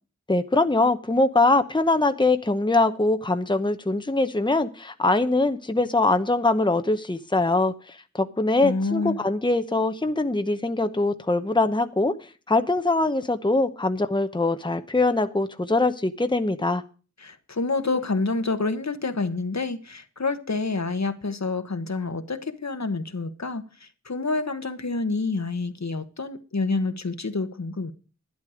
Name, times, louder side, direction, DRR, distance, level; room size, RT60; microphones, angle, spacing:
voice 1, 0.3-12.1 12.5-16.8, left 2 dB, 15° left, 0.9 m, -23 dB
voice 2, 8.6-9.2 17.2-27.9, left 3 dB, 65° left, 1.3 m, -28 dB
11.5 x 10.5 x 5.0 m
wide cardioid pair, 60°, 30 cm